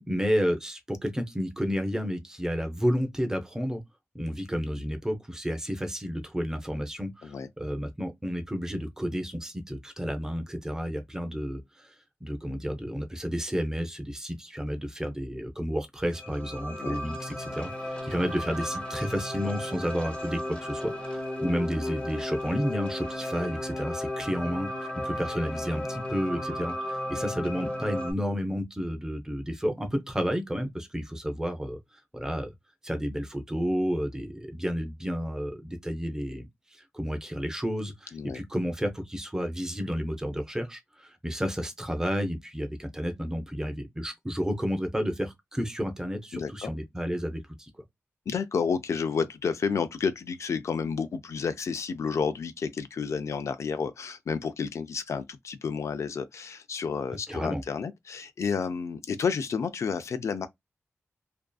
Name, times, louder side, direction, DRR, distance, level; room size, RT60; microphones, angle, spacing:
voice 1, 0.0-3.8 4.1-11.9 12.2-17.7 18.0-31.8 32.1-32.5 32.8-47.7 57.3-57.6, equal, 10° right, 0.6 m, -31 dB
sound 1, 16.1-28.1, left 1 dB, 25° left, 0.7 m, -34 dB
voice 2, 46.3-46.7 48.3-60.5, left 5 dB, 80° left, 0.3 m, -31 dB
2.6 x 2.3 x 2.2 m
wide cardioid pair, 125°, 5 cm